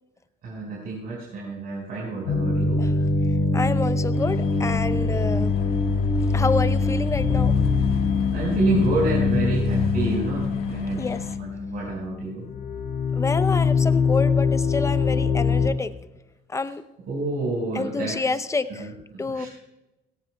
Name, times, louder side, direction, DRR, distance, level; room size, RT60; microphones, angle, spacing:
voice 1, 0.4-2.8 8.3-11.0 11.4-12.4 17.1-18.1 18.8-19.5, right 3 dB, 65° right, -6 dB, 5.4 m, -28 dB
sound 1, 2.3-12.2 12.4-15.7, left 4 dB, 90° left, 2.2 m, -23 dB
voice 2, 3.5-5.5 6.3-7.5 11.0-11.3 13.1-15.9 16.5-16.8 17.7-18.9 19.2-19.5, left 3 dB, 15° left, 12 dB, 0.7 m, -28 dB
sound 2, 4.1-11.4, left 4 dB, 70° left, 1.7 m, -40 dB
18.5 x 17.0 x 2.3 m, 0.98 s
cardioid pair, 110°, 17 cm